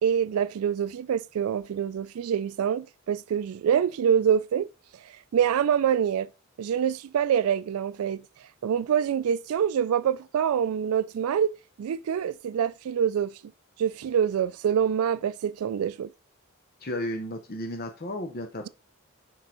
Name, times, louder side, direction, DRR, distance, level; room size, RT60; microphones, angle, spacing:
voice 1, 0.0-4.7 5.3-6.3 6.6-8.2 8.6-11.5 11.8-13.3 13.8-16.1, right 8 dB, 80° right, 0.3 m, -25 dB
voice 2, 16.8-18.7, left 1 dB, 45° left, 0.7 m, -33 dB
6.5 x 4.6 x 4.3 m
head